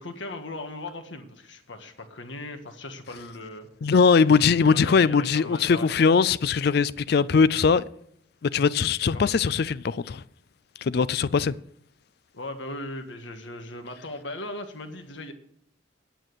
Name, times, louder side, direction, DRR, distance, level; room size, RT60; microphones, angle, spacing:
voice 1, 0.0-3.7 4.7-6.1 9.1-9.3 12.3-15.3, left 2 dB, 80° left, 1.6 m, -38 dB
voice 2, 3.8-7.9 8.4-10.2 10.8-11.5, left 5 dB, 55° left, 0.4 m, -21 dB
9.0 x 9.0 x 7.8 m
head